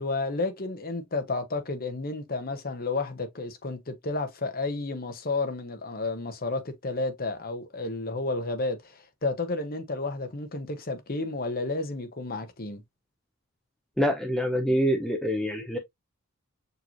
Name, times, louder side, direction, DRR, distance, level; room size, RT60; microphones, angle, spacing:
voice 1, 0.0-12.8, left 3 dB, 45° left, 1.0 m, -31 dB
voice 2, 14.0-15.8, equal, ahead, 0.6 m, -25 dB
6.6 x 3.1 x 2.6 m
head